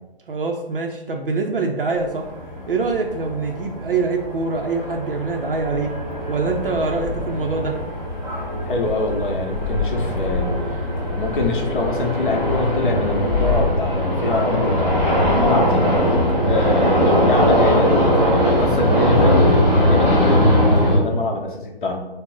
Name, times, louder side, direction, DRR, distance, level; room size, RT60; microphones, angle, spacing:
voice 1, 0.3-2.3 2.7-5.9 6.3-7.8, right 4 dB, 60° right, 2 dB, 0.5 m, -24 dB
sound 1, 1.9-21.0, equal, ahead, 0.6 m, -20 dB
voice 2, 8.7-10.8 11.1-15.9 16.4-22.0, left 2 dB, 55° left, 1 dB, 0.8 m, -24 dB
3.9 x 2.0 x 3.8 m, 0.97 s
figure-of-eight pair, 145°, 31 cm